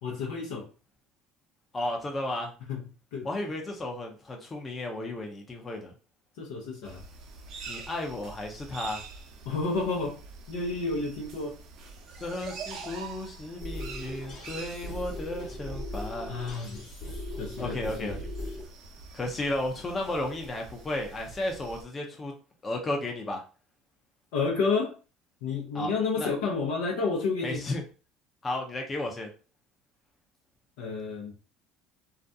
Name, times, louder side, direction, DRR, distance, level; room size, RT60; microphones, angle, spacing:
voice 1, 0.0-0.7 2.7-2.8 3.1-3.3 6.4-7.0 9.4-10.2 10.5-11.6 16.3-16.9 17.4-18.2 24.3-24.9 25.4-27.7 30.8-31.3, left 4 dB, 80° left, -2 dB, 0.6 m, -30 dB
voice 2, 1.7-2.5 3.2-5.9 7.7-9.0 12.2-16.4 17.6-18.2 19.1-22.3 22.6-23.4 25.7-26.3 27.4-27.8 28.4-29.3, left 1 dB, 25° left, 1 dB, 0.6 m, -33 dB
sound 1, 6.8-21.8, right 4 dB, 60° right, 0.6 m, -45 dB
sound 2, 13.6-18.6, left 1 dB, 55° left, 1.1 m, -39 dB
2.4 x 2.2 x 2.6 m, 0.35 s
supercardioid pair, 95°, 0 cm